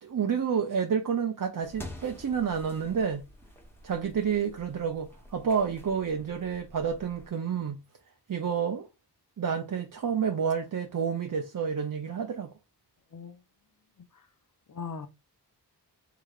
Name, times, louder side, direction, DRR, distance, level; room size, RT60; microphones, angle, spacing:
voice 1, 0.0-3.3 3.8-7.8 8.3-8.9 9.4-12.5, right 7 dB, 50° right, 0.6 m, -29 dB
sound 1, 1.6-7.3, left 1 dB, 5° left, 1.1 m, -48 dB
voice 2, 14.7-15.1, left 5 dB, 50° left, 0.7 m, -40 dB
4.8 x 3.3 x 2.5 m
wide cardioid pair, 95°, 41 cm